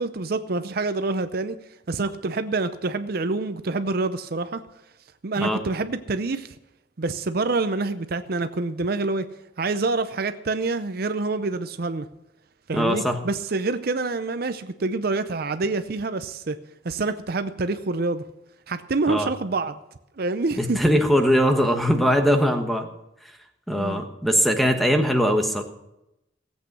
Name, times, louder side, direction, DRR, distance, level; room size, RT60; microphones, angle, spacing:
voice 1, 0.0-1.6 1.9-4.6 5.2-6.5 7.0-9.3 9.6-12.1 12.7-16.6 16.8-18.2 18.7-19.8 20.2-20.8 23.8-24.0, right 3 dB, 55° right, 11 dB, 0.6 m, -26 dB
voice 2, 12.7-13.2 19.1-19.3 20.6-22.9 23.7-25.6, equal, ahead, 5 dB, 1.2 m, -21 dB
17.0 x 8.3 x 6.1 m, 0.89 s
head